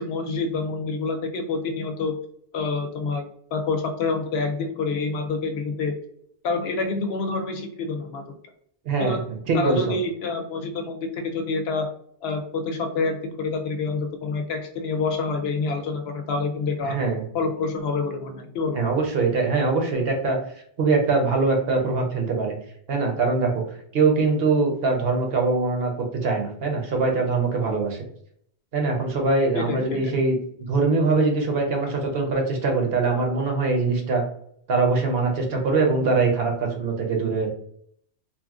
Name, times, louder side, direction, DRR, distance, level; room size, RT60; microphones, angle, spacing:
voice 1, 0.0-2.2 2.5-6.0 6.4-8.2 9.0-9.2 9.5-11.9 12.2-17.0 17.3-18.8 29.5-30.1, left 3 dB, 75° left, 5 dB, 0.8 m, -27 dB
voice 2, 8.8-9.9 16.8-17.2 18.7-20.4 20.8-22.6 22.9-23.6 23.9-25.9 26.2-28.0 28.7-30.3 30.7-34.2 34.7-37.5, right 3 dB, 65° right, 2 dB, 0.9 m, -22 dB
2.8 x 2.5 x 2.3 m, 0.68 s
omnidirectional pair, 1.1 m